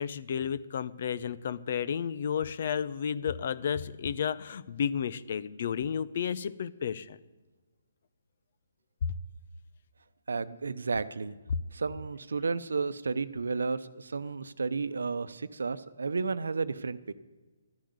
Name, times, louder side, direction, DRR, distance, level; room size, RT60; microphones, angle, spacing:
voice 1, 0.0-7.2 9.0-9.1 11.5-11.6, left 7 dB, 50° left, 16 dB, 0.7 m, -32 dB
voice 2, 10.3-11.3 11.7-17.1, right 4 dB, 80° right, 14 dB, 0.8 m, -32 dB
12.5 x 10.5 x 8.0 m, 1.2 s
hypercardioid pair, 150°, 0 cm